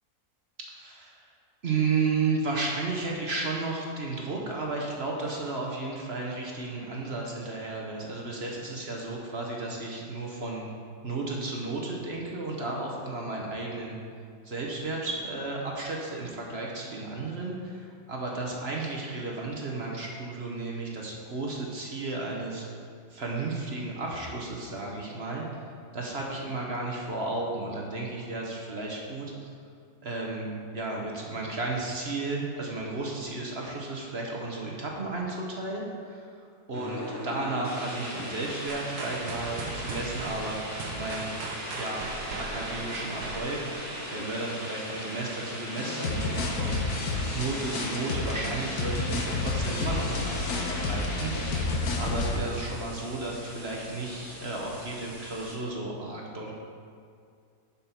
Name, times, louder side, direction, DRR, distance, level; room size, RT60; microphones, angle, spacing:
voice 1, 0.7-1.3 1.6-10.7 11.0-14.0 14.4-22.6 23.1-25.5 25.9-29.5 30.0-36.3 36.7-41.3 41.8-42.1 42.4-46.8 47.3-56.5, right 3 dB, 45° right, -2 dB, 1.2 m, -33 dB
sound 1, 36.7-55.6, equal, 10° left, 1.4 m, -39 dB
sound 2, 38.7-44.6, right 4 dB, 85° right, 1.4 m, -39 dB
sound 3, 45.8-52.4, left 3 dB, 70° left, 1.4 m, -30 dB
10.5 x 5.7 x 4.4 m, 2.3 s
omnidirectional pair, 1.7 m